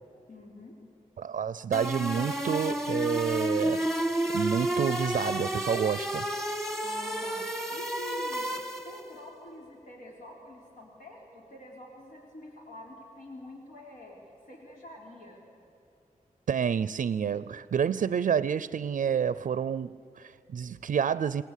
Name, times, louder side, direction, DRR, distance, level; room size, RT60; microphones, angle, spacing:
voice 1, 0.3-0.8 6.8-8.5 8.8-14.2 14.5-15.4, left 1 dB, 80° left, 3.6 m, -47 dB
voice 2, 1.2-6.3 16.5-21.4, right 7 dB, 70° right, 0.5 m, -29 dB
sound 1, 1.7-9.1, right 1 dB, ahead, 1.5 m, -31 dB
28.5 x 18.5 x 8.3 m
wide cardioid pair, 135°, 14 cm